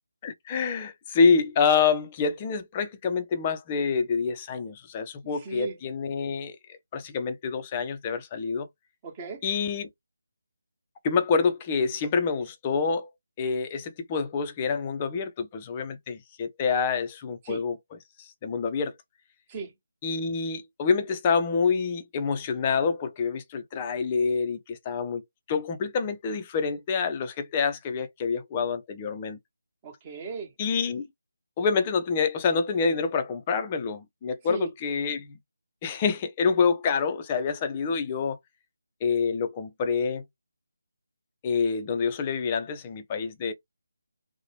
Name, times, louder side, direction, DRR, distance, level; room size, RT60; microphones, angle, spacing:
voice 1, 0.2-8.7 9.4-9.9 11.0-13.1 13.4-17.8 18.2-18.9 20.0-25.2 25.5-29.4 30.6-31.1 31.6-35.4 35.8-38.4 39.0-40.2 41.4-43.5, left 5 dB, 20° left, 0.5 m, -27 dB
voice 2, 5.4-5.7 9.0-9.4 17.4-17.6 19.5-19.7 29.8-30.5 34.5-34.7, right 5 dB, 20° right, 1.0 m, -36 dB
2.9 x 2.1 x 2.8 m
figure-of-eight pair, 155°, 0 cm